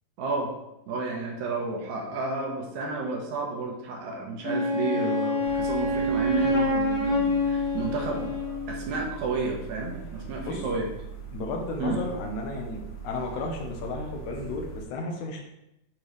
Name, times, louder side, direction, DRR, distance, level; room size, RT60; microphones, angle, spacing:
voice 1, 0.2-0.5 0.9-8.3 8.7-10.9 11.8-12.0, right 3 dB, 70° right, -1 dB, 2.5 m, -31 dB
Wind instrument woodwind instrument, 4.4-8.8, left 1 dB, 35° left, 1.5 m, -26 dB
sound 1, 5.4-14.8, right 6 dB, 55° left, 2.0 m, -41 dB
voice 2, 11.3-15.4, left 2 dB, 75° left, 2 dB, 2.4 m, -33 dB
10.5 x 3.6 x 3.2 m, 0.87 s
omnidirectional pair, 3.5 m